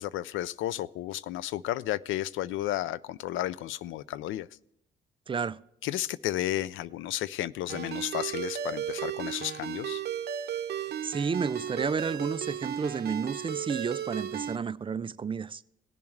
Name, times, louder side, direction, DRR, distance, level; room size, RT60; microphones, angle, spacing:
voice 1, 0.0-4.5 5.8-10.0, left 14 dB, 85° left, 0.4 m, -33 dB
voice 2, 5.3-5.6 10.8-15.6, right 6 dB, 25° right, 0.4 m, -31 dB
Ringtone, 7.7-14.6, right 9 dB, 55° right, 0.7 m, -35 dB
18.0 x 7.0 x 3.2 m
cardioid pair, 90°, 20 cm